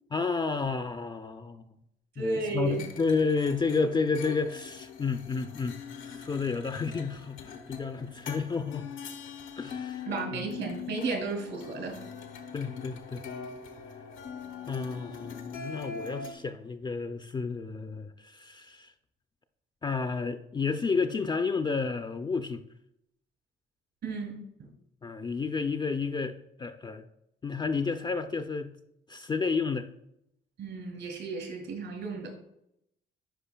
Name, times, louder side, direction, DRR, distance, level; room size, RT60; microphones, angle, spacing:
voice 1, 0.1-1.6 2.2-5.7 6.0-8.9 9.6-10.0 10.3-10.4 12.5-13.2 14.7-18.9 19.8-22.6 25.0-27.1 27.4-28.7 29.1-29.9, left 4 dB, 25° left, 8 dB, 0.3 m, -31 dB
voice 2, 2.2-2.8 10.1-12.0 24.0-24.7 30.6-32.3, right 3 dB, 70° right, 2 dB, 2.3 m, -34 dB
sound 1, 2.7-16.3, left 6 dB, 85° left, 0.8 m, -42 dB
10.0 x 4.9 x 2.2 m, 0.80 s
cardioid pair, 90°, 20 cm